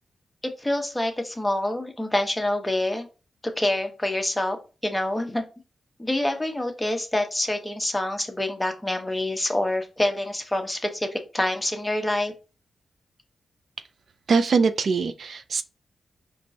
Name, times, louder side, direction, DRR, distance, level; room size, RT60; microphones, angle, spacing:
voice 1, 0.6-3.1 3.6-4.6 4.8-5.4 6.0-12.3, left 1 dB, 10° left, 1.0 m, -26 dB
voice 2, 14.3-15.6, right 5 dB, 70° right, 0.4 m, -22 dB
4.4 x 3.1 x 2.8 m
cardioid pair, 60°, 0 cm